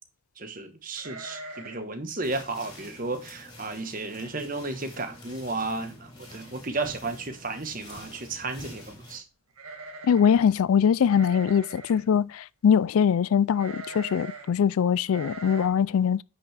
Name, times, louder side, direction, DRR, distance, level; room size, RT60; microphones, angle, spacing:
voice 1, 0.4-9.2, right 3 dB, 40° right, 1.2 m, -33 dB
sound 1, 1.0-1.9 2.2-2.3 2.7-3.0 3.6-3.7 4.0-4.5 4.8-4.9 6.0-6.1 6.4-6.9 9.5-10.5 11.1-12.1 13.5-14.5 15.1-15.7, right 3 dB, 80° right, 1.8 m, -42 dB
sound 2, 2.2-9.2, left 1 dB, 20° left, 3.4 m, -47 dB
voice 2, 10.0-16.2, left 7 dB, 75° left, 0.3 m, -22 dB
9.5 x 6.0 x 3.3 m
head